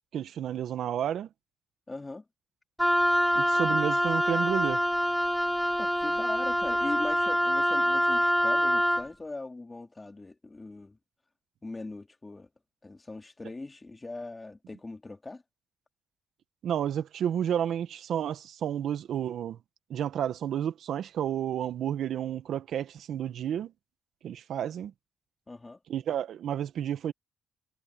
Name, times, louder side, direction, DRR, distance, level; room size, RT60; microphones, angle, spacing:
voice 1, 0.1-1.3 3.3-4.8 16.6-19.6 19.9-23.7 24.2-24.9 25.9-27.1, right 9 dB, 70° right, 1.5 m, -31 dB
voice 2, 1.9-2.2 5.8-11.0 11.6-12.5 12.8-15.4 25.5-25.8, left 2 dB, 20° left, 2.8 m, -40 dB
Wind instrument woodwind instrument, 2.8-9.1, equal, ahead, 0.4 m, -25 dB
cardioid pair, 90°, 0 cm